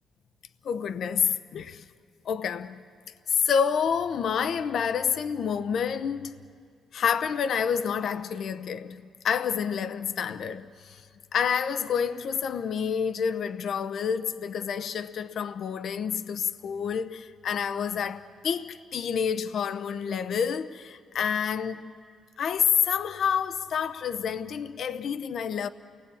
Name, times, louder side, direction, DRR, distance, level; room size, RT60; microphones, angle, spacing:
voice 1, 0.6-1.8 2.2-2.8 3.3-6.4 6.9-11.0 11.3-21.9 22.4-25.7, left 7 dB, 65° left, 0.9 m, -28 dB
28.5 x 19.0 x 8.7 m
cardioid pair, 90°, 0 cm